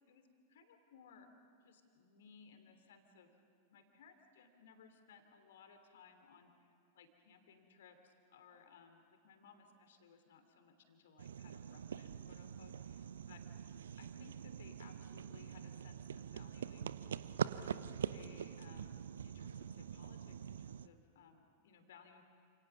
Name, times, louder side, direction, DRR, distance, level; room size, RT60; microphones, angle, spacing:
voice 1, 0.1-1.3 1.6-3.3 3.7-13.4 13.7-17.2 17.6-22.2, left 6 dB, 60° left, 7 dB, 3.1 m, -62 dB
sound 1, 11.2-20.9, right 8 dB, 65° right, 0.6 m, -44 dB
29.5 x 28.0 x 6.0 m, 2.3 s
figure-of-eight pair, 90°, 0 cm